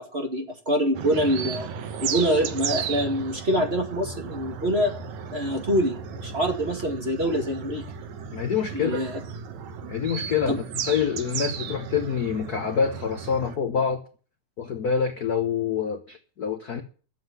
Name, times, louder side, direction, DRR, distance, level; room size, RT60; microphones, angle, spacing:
voice 1, 0.0-1.7 2.0-4.9 5.3-7.8 8.7-9.2 10.5-10.6, equal, 25° right, 3 dB, 1.9 m, -25 dB
sound 1, 0.9-13.6, right 6 dB, 75° right, 2.5 m, -35 dB
voice 2, 8.3-9.0 9.9-14.0 14.6-16.8, left 7 dB, 65° left, 7 dB, 0.9 m, -26 dB
12.0 x 7.8 x 9.3 m, 0.40 s
omnidirectional pair, 3.3 m